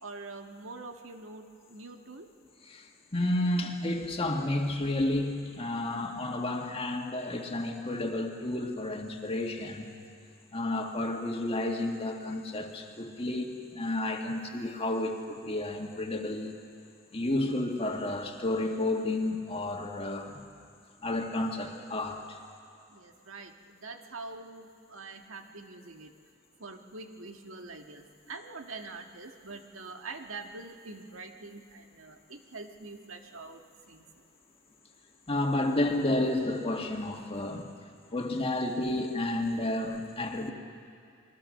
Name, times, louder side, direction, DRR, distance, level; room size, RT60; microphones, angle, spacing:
voice 1, 0.0-2.3 23.0-23.5 23.8-26.1 26.6-33.6 33.9-34.0, right 3 dB, 90° right, 4 dB, 1.7 m, -44 dB
voice 2, 2.6-9.9 10.5-16.6 17.1-20.4 21.0-22.4 35.3-37.7 38.1-40.5, left 1 dB, 30° left, 2 dB, 1.9 m, -31 dB
27.5 x 22.0 x 6.5 m, 2.3 s
head